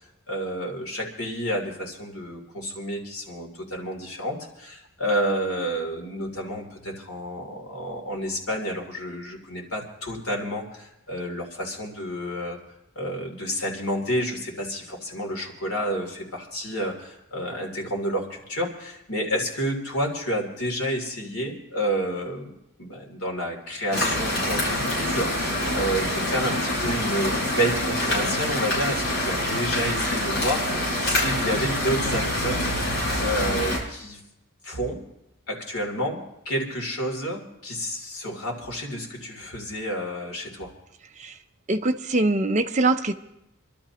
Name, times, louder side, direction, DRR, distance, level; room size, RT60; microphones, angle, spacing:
voice 1, 0.3-12.6 12.9-22.5 22.8-32.6 33.2-34.2 34.6-35.0 35.5-40.7, equal, 90° left, 1 dB, 3.1 m, -30 dB
sound 1, 23.9-33.8, left 1 dB, 50° left, 5.5 m, -26 dB
voice 2, 41.7-43.1, right 2 dB, 35° right, 7 dB, 0.6 m, -23 dB
28.5 x 12.5 x 3.0 m, 0.87 s
head